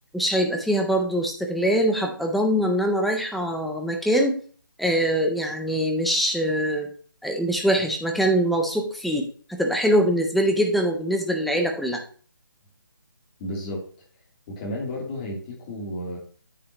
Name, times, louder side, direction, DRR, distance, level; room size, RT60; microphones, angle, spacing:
voice 1, 0.1-4.4 4.8-6.9 7.2-12.0, equal, ahead, 2 dB, 0.3 m, -23 dB
voice 2, 13.4-13.9 14.5-16.2, left 1 dB, 20° left, -2 dB, 2.9 m, -32 dB
9.5 x 7.7 x 2.9 m, 0.43 s
hypercardioid pair, 165°, 12 cm